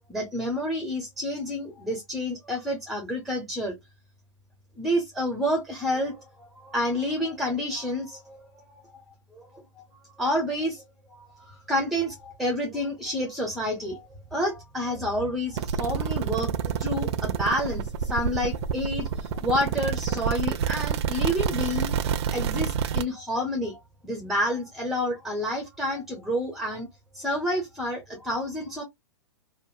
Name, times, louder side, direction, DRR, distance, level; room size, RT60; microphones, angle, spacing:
voice 1, 0.1-3.7 4.8-8.6 8.9-9.0 9.3-9.8 10.2-10.8 11.1-21.9 22.3-26.9 27.1-28.8, equal, ahead, 0.7 m, -29 dB
sound 1, 15.6-23.0, right 7 dB, 60° right, 0.4 m, -28 dB
2.8 x 2.1 x 2.4 m
hypercardioid pair, 115°, 16 cm